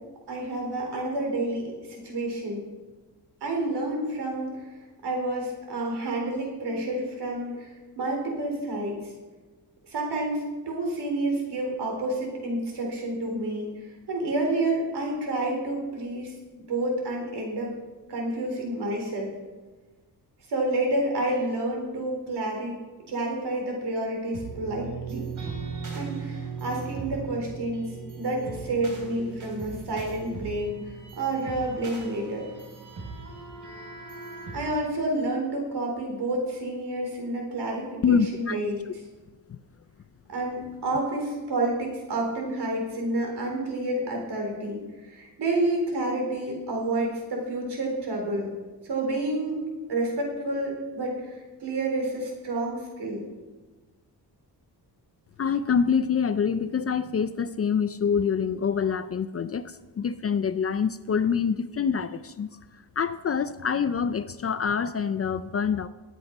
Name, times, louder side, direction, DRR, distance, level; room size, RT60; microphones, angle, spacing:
voice 1, 0.3-2.6 3.4-4.7 5.0-9.0 9.8-16.4 16.7-17.7 18.1-19.3 20.5-22.8 23.1-25.2 25.9-27.9 28.2-30.8 31.2-32.5 34.5-39.0 40.3-48.5 48.8-49.6 49.9-53.2, right 2 dB, 70° right, 1 dB, 4.1 m, -29 dB
sound 1, 24.3-34.7, right 5 dB, 45° right, 3.1 m, -38 dB
voice 2, 38.0-38.6 38.9-39.0 39.5-39.6 55.4-62.5 63.0-65.9, left 6 dB, 35° left, 13 dB, 0.4 m, -26 dB
19.0 x 7.9 x 5.4 m, 1.3 s
wide cardioid pair, 170°, 41 cm